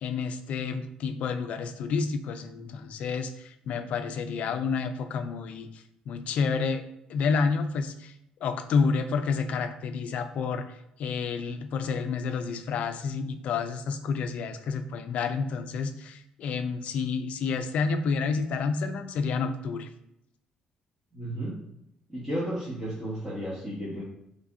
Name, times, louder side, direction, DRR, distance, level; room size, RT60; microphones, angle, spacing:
voice 1, 0.0-6.8 7.1-8.1 8.4-10.7 11.0-19.9, left 5 dB, 65° left, 9 dB, 0.3 m, -29 dB
voice 2, 21.1-21.6 22.1-24.0, right 1 dB, 10° right, -10 dB, 1.0 m, -33 dB
3.3 x 2.5 x 3.6 m, 0.81 s
cardioid pair, 140°, 2 cm